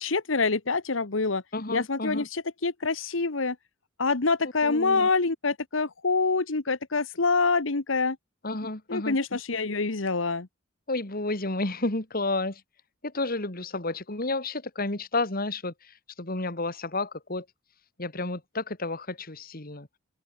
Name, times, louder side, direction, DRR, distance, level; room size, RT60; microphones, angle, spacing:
voice 1, 0.0-1.4 1.7-3.6 4.0-8.2 8.9-10.5, left 4 dB, 80° left, 1.4 m, -26 dB
voice 2, 1.5-2.3 4.6-5.1 8.4-9.2 10.9-12.6 13.0-17.5 18.0-19.9, left 2 dB, 50° left, 2.8 m, -31 dB
open air
head